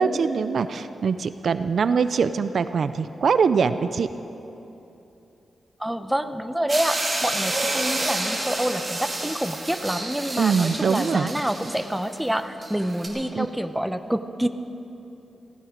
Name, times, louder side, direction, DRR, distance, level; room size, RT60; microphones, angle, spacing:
voice 1, 0.0-4.1 10.4-11.3 13.3-13.5, right 5 dB, 60° right, 12 dB, 0.4 m, -23 dB
voice 2, 5.8-14.5, right 1 dB, 5° right, 9 dB, 0.7 m, -27 dB
sound 1, 6.7-13.1, right 2 dB, 25° right, 2.7 m, -30 dB
16.5 x 14.5 x 5.1 m, 3.0 s
cardioid pair, 90°, 0 cm